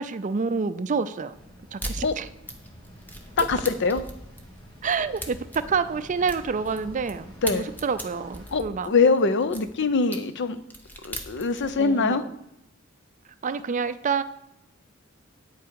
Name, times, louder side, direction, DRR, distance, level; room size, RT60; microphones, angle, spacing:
voice 1, 0.0-1.3 1.7-2.3 3.4-3.5 4.8-8.9 11.6-12.3 13.4-14.2, right 5 dB, 40° right, 13 dB, 0.4 m, -28 dB
sound 1, 1.3-8.6, equal, 25° left, 3.0 m, -48 dB
sound 2, 1.8-2.0 2.5-7.1 7.4-9.6 10.1-10.2 10.6-11.7, equal, 10° left, 1.0 m, -38 dB
voice 2, 3.4-4.0 7.4-7.7 8.5-10.6 11.0-12.3, left 4 dB, 60° left, 12 dB, 0.6 m, -23 dB
9.4 x 8.3 x 4.7 m, 0.83 s
head